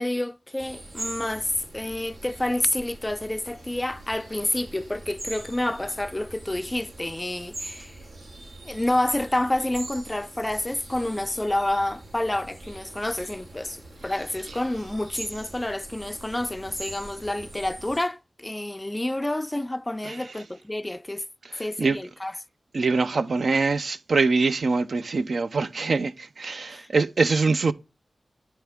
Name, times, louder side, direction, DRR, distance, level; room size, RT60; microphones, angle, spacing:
voice 1, 0.0-8.0 8.6-21.3 21.6-22.4 26.7-26.9, left 1 dB, 15° left, 0.3 m, -29 dB
sound 1, 0.6-18.0, right 2 dB, 80° right, 2.1 m, -42 dB
voice 2, 22.7-27.7, right 4 dB, 65° right, 0.4 m, -23 dB
8.2 x 5.7 x 3.5 m
wide cardioid pair, 90°, 0 cm